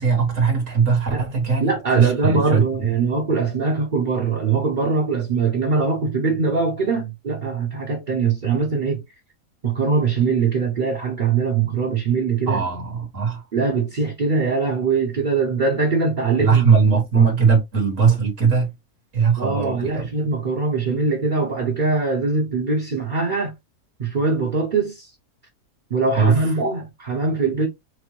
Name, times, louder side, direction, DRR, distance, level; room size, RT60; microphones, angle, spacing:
voice 1, 0.0-2.6 12.5-13.4 16.4-18.7 19.1-20.1 26.2-26.5, right 5 dB, 65° right, 1.9 m, -19 dB
voice 2, 1.6-9.0 9.6-12.6 13.5-16.7 17.1-17.3 19.4-23.5 24.0-25.1 25.9-27.7, right 4 dB, 40° right, 1.0 m, -22 dB
6.0 x 2.1 x 3.1 m
omnidirectional pair, 1.5 m